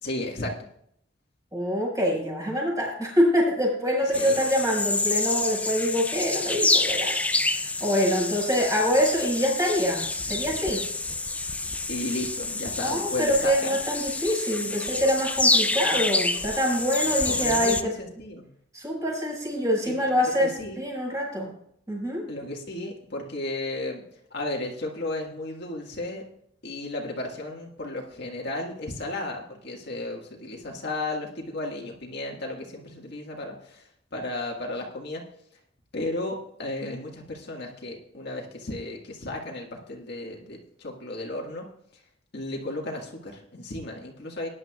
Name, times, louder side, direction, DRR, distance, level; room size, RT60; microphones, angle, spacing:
voice 1, 0.0-0.6 4.1-4.4 11.9-13.7 14.6-14.9 17.3-18.5 19.8-19.9 20.4-20.8 22.3-24.0 24.3-26.2 26.6-35.2 35.9-41.6 42.3-44.5, left 2 dB, 55° left, -1 dB, 1.8 m, -34 dB
voice 2, 1.5-10.9 12.8-17.9 18.7-21.5 21.9-22.3, equal, 20° right, -3 dB, 5.4 m, -25 dB
sound 1, 4.1-17.8, left 2 dB, 5° left, 0.4 m, -27 dB
19.0 x 10.5 x 2.4 m, 0.69 s
head